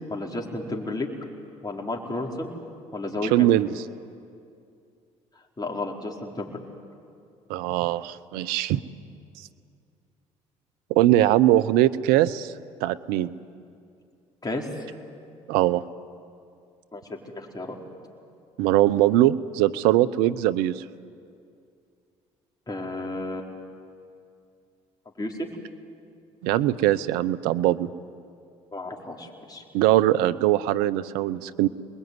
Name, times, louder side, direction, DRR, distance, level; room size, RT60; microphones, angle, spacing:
voice 1, 0.1-1.1 1.6-2.5 2.9-3.5 5.6-6.6 14.4-14.7 16.9-17.8 22.7-23.5 25.2-25.5 28.7-29.6, left 2 dB, 25° left, 0 dB, 4.7 m, -32 dB
voice 2, 3.3-3.7 7.5-8.8 10.9-12.5 12.8-13.3 15.5-15.8 18.6-20.8 26.4-27.9 29.7-31.7, right 14 dB, 80° right, 15 dB, 0.8 m, -21 dB
27.0 x 21.0 x 9.7 m, 2.4 s
hypercardioid pair, 60°, 15 cm